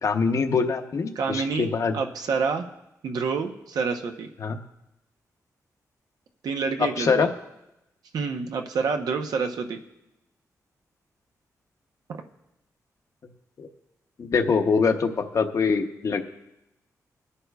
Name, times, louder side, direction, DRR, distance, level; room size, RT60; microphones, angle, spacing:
voice 1, 0.0-1.9 4.4-4.6 7.0-7.3 13.6-13.7 14.2-16.2, left 5 dB, 55° left, 6 dB, 0.9 m, -24 dB
voice 2, 1.1-1.7 1.9-2.7 3.0-4.3 6.4-7.2 8.1-9.8, right 5 dB, 90° right, 5 dB, 0.8 m, -27 dB
21.0 x 9.8 x 2.4 m, 0.89 s
wide cardioid pair, 100°, 6 cm